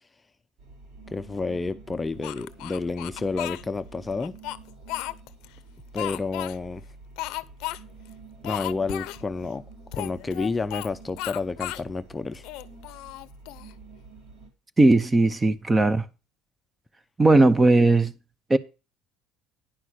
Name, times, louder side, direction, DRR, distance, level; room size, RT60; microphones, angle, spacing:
sound 1, 0.6-14.5, right 3 dB, 70° right, 4.1 m, -48 dB
voice 1, 1.1-4.3 5.9-6.8 8.4-9.6 9.9-12.4, left 3 dB, 20° left, 0.6 m, -30 dB
Speech, 2.2-3.6 4.2-5.5 6.0-6.6 7.2-7.8 8.0-8.1 8.4-9.2 9.9-10.9 11.2-11.9 12.3-13.7, left 18 dB, 80° left, 0.6 m, -34 dB
voice 2, 14.8-16.0 17.2-18.1 18.5-18.6, right 2 dB, 20° right, 0.8 m, -18 dB
10.5 x 5.6 x 6.4 m
cardioid pair, 110°, 0 cm